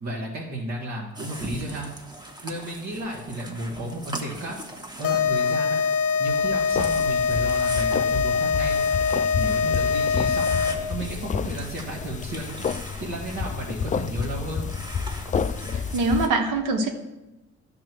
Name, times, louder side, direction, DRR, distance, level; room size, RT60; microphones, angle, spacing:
voice 1, 0.0-1.9 2.4-4.6 5.0-5.8 6.2-8.8 9.3-10.6 10.9-12.6 13.0-14.7, right 1 dB, 65° right, -5 dB, 1.8 m, -33 dB
sound 1, 1.1-16.3, right 1 dB, 15° right, 1.2 m, -41 dB
sound 2, 5.0-11.0, left 5 dB, 50° left, 0.7 m, -23 dB
sound 3, 6.7-16.3, left 6 dB, 25° left, 0.4 m, -30 dB
voice 2, 15.7-16.9, right 3 dB, 80° right, 4 dB, 1.1 m, -24 dB
10.5 x 3.8 x 6.2 m, 1.0 s
cardioid pair, 90°, 30 cm